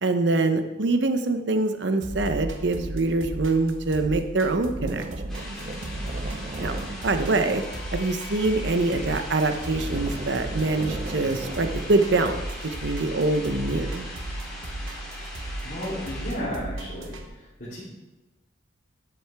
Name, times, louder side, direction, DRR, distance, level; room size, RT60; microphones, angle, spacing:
voice 1, 0.0-5.0 6.6-6.7 7.0-7.6 7.9-14.1, right 2 dB, 65° right, 8 dB, 0.7 m, -24 dB
sound 1, 2.0-17.2, right 1 dB, 85° right, 1.2 m, -36 dB
sound 2, 4.0-4.2 4.8-8.0 8.6-9.2 9.5-12.5, right 2 dB, 35° right, 0.4 m, -38 dB
sound 3, 5.3-16.3, left 1 dB, ahead, 2.6 m, -40 dB
voice 2, 15.6-17.8, equal, 45° left, -10 dB, 3.0 m, -34 dB
12.0 x 7.6 x 3.5 m, 1.1 s
head